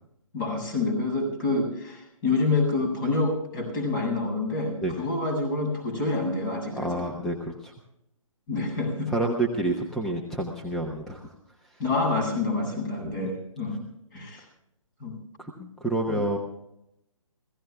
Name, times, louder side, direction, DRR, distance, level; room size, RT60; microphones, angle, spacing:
voice 1, 0.3-7.2 8.5-9.1 11.8-13.8 14.1-14.4 15.0-15.2 16.1-16.4, left 3 dB, 35° left, 4 dB, 7.7 m, -27 dB
voice 2, 6.8-7.7 9.1-11.2 15.4-16.4, right 2 dB, ahead, 1 dB, 1.0 m, -28 dB
28.5 x 16.5 x 2.4 m, 0.82 s
figure-of-eight pair, 145°, 18 cm